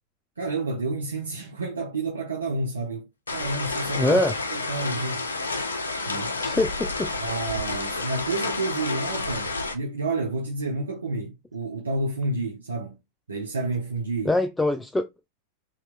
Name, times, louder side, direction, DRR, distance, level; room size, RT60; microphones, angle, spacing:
voice 1, 0.4-5.3 6.1-6.3 7.2-13.0 13.3-14.4, right 2 dB, 75° right, 0.8 m, -30 dB
sound 1, 3.3-9.8, left 3 dB, 75° left, 0.6 m, -30 dB
voice 2, 4.0-4.3 6.4-7.1 14.2-15.3, left 2 dB, 10° left, 0.4 m, -24 dB
5.1 x 2.9 x 2.4 m
figure-of-eight pair, 90°, 0 cm